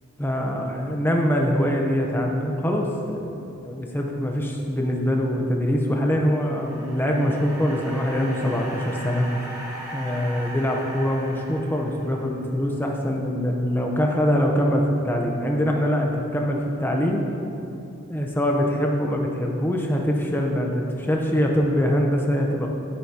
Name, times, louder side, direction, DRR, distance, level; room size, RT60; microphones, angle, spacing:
voice 1, 0.2-9.3 9.9-17.3 18.1-22.7, equal, 10° left, 0 dB, 0.8 m, -23 dB
sound 1, 6.2-12.5, right 1 dB, 15° right, 1.9 m, -38 dB
11.5 x 9.8 x 2.9 m, 2.8 s
head